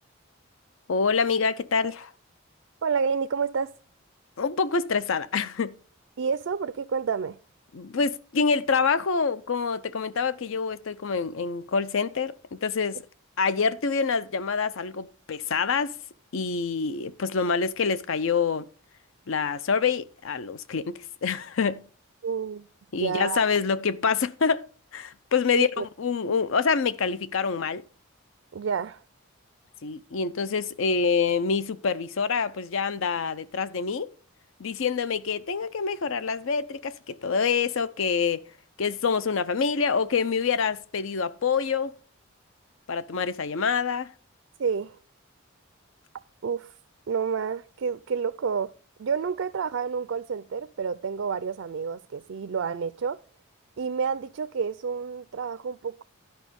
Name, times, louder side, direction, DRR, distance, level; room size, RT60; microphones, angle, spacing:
voice 1, 0.9-2.1 4.4-5.7 7.7-13.0 13.4-16.0 16.3-18.7 19.3-21.8 22.9-24.7 24.9-27.8 29.8-34.1 34.6-38.4 38.8-41.9 42.9-44.1, left 5 dB, 65° left, 0.5 m, -26 dB
voice 2, 2.8-3.7 6.2-7.4 22.2-22.7 23.0-23.4 25.5-25.8 28.5-29.0 44.6-45.0 46.4-46.7 47.1-48.7 49.0-53.2 53.8-56.0, right 6 dB, 65° right, 0.4 m, -29 dB
11.5 x 5.4 x 5.2 m
head